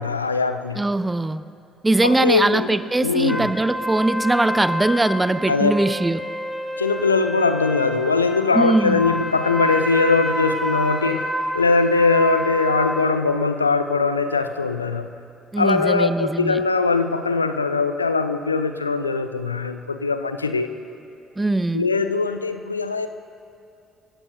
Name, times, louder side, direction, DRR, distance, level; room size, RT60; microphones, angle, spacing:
voice 1, 0.0-0.8 2.0-3.5 5.5-5.7 6.8-15.1 15.6-20.7 21.7-23.1, left 4 dB, 85° left, 10 dB, 0.5 m, -21 dB
voice 2, 0.8-1.4 1.8-6.2 8.5-9.1 15.5-16.6 21.4-21.9, right 2 dB, 15° right, 15 dB, 0.6 m, -21 dB
sound 1, 3.3-13.2, equal, ahead, 1.8 m, -28 dB
27.0 x 16.5 x 2.6 m, 2.6 s
figure-of-eight pair, 50°, 0 cm